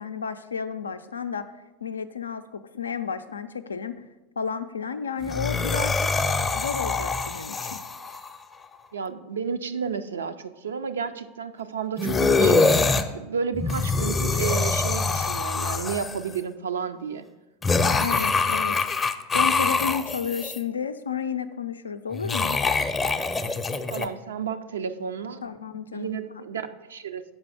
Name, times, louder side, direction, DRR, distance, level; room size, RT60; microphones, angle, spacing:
voice 1, 0.0-1.4 1.8-4.0 4.4-6.2 6.5-7.8 18.0-18.8 19.3-22.6 25.4-26.4, left 6 dB, 85° left, 10 dB, 0.4 m, -32 dB
sound 1, 5.2-8.3 12.0-13.0 13.5-16.3 17.6-20.6 22.1-24.1, left 3 dB, 20° left, 0.5 m, -24 dB
voice 2, 8.9-17.3 23.9-25.4 25.9-27.2, right 6 dB, 80° right, 9 dB, 0.4 m, -32 dB
7.3 x 5.2 x 4.8 m, 1.1 s
hypercardioid pair, 85°, 0 cm